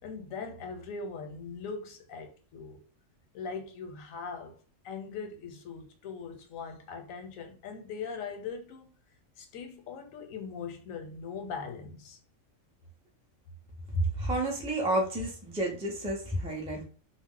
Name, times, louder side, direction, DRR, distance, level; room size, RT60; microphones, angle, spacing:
voice 1, 0.0-2.8 3.3-4.6 4.8-8.9 9.4-12.2, left 5 dB, 85° left, 1.1 m, -40 dB
voice 2, 13.9-16.8, right 1 dB, 5° right, 0.4 m, -30 dB
2.4 x 2.0 x 3.6 m
omnidirectional pair, 1.4 m